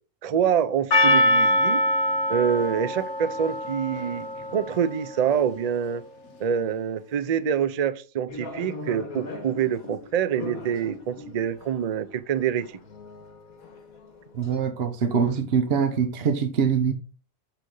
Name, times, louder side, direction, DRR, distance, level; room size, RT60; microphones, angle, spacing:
voice 1, 0.2-1.8 2.3-6.0 6.4-12.7, right 8 dB, 85° right, 0.3 m, -26 dB
Percussion, 0.9-5.5, left 1 dB, 55° left, 1.4 m, -24 dB
sound 1, 8.3-14.6, left 3 dB, 80° left, 1.8 m, -41 dB
voice 2, 14.3-16.9, right 6 dB, 50° right, 1.0 m, -23 dB
6.8 x 6.7 x 3.8 m
omnidirectional pair, 1.5 m